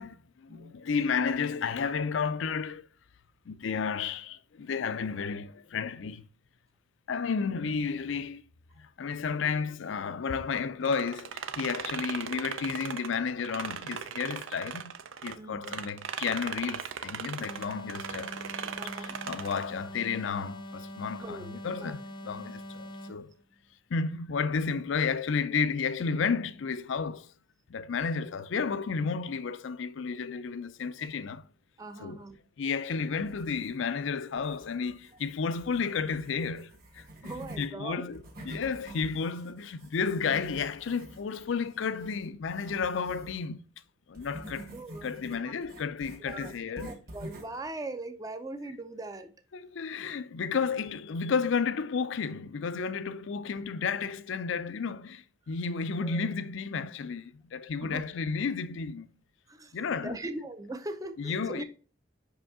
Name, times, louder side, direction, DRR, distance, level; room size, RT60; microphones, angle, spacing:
voice 1, 0.0-2.9 3.5-6.3 7.1-8.4 8.8-14.9 15.2-23.3 23.9-27.3 27.7-31.4 32.0-32.2 32.6-37.0 37.6-43.6 44.1-44.7 45.0-46.9 49.5-59.1 59.7-60.2 61.2-61.6, left 5 dB, 70° left, 0.4 m, -32 dB
sound 1, 10.9-15.4 15.6-19.7, right 7 dB, 75° right, 0.5 m, -38 dB
voice 2, 15.3-15.9 18.8-19.2 21.1-21.9 31.8-32.4 37.2-38.1 44.7-45.1 45.4-45.5 46.3-49.3 56.0-56.3 57.8-58.0 59.5-61.6, right 2 dB, 15° right, 0.5 m, -41 dB
sound 2, 17.4-23.3, left 1 dB, 20° left, 0.6 m, -43 dB
sound 3, 33.2-34.0 34.3-37.7 38.1-43.4 44.1-47.6, right 1 dB, 45° right, 1.7 m, -47 dB
5.5 x 5.0 x 3.6 m
head